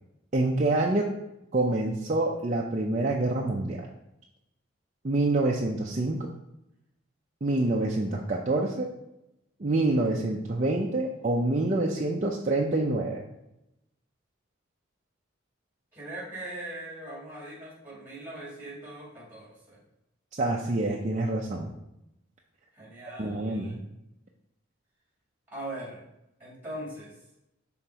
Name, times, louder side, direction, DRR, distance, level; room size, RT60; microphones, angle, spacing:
voice 1, 0.3-1.1 1.5-3.9 5.0-6.3 7.4-8.9 9.6-13.2 20.4-21.7 23.2-23.8, right 2 dB, 35° right, -2 dB, 0.5 m, -26 dB
voice 2, 15.9-19.8 22.7-23.8 25.5-26.0 26.4-27.1, right 1 dB, 10° right, -5 dB, 2.1 m, -40 dB
5.8 x 3.9 x 4.5 m, 0.87 s
head